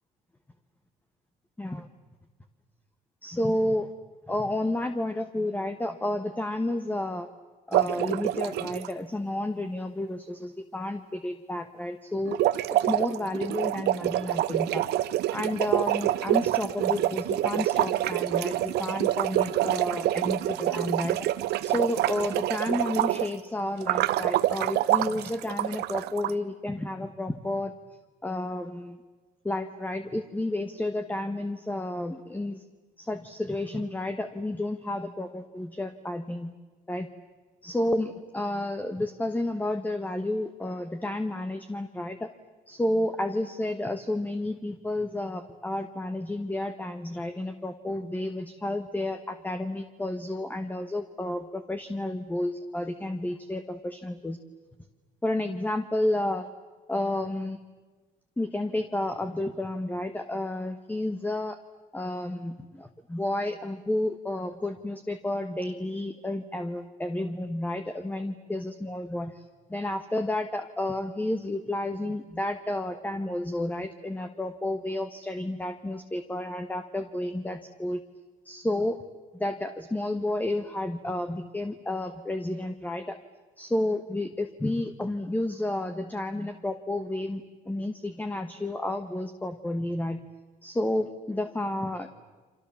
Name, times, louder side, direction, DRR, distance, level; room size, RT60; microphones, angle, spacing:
voice 1, 3.2-3.9 4.3-7.3 7.7-12.4 12.9-14.8 15.3-21.2 21.6-27.7 28.2-29.0 29.4-32.6 33.0-36.5 36.9-37.1 37.6-42.3 42.7-54.4 55.2-56.5 56.9-57.6 58.4-61.6 61.9-69.4 69.7-78.0 78.4-79.0 79.3-83.2 83.6-90.3 90.6-92.1, left 1 dB, 10° left, 8 dB, 1.3 m, -31 dB
sound 1, 7.7-8.9 12.3-23.4 23.8-26.3, right 14 dB, 80° right, 0.9 m, -26 dB
30.0 x 26.0 x 7.2 m, 1.3 s
cardioid pair, 110°, 17 cm